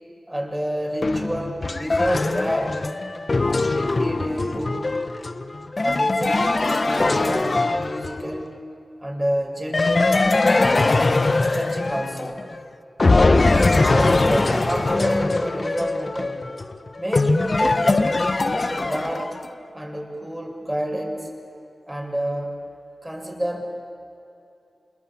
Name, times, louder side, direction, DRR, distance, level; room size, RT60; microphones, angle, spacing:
voice 1, 0.3-2.8 3.7-4.9 5.8-8.5 9.0-10.2 11.5-12.4 13.5-16.5 17.0-19.3 19.7-21.3 21.9-22.6 23.0-23.6, right 1 dB, 10° right, 1 dB, 7.0 m, -29 dB
sound 1, 1.0-8.4 9.7-12.6 13.0-19.5, left 3 dB, 50° left, 1.1 m, -21 dB
27.5 x 21.5 x 8.8 m, 2.8 s
cardioid pair, 45°, 0 cm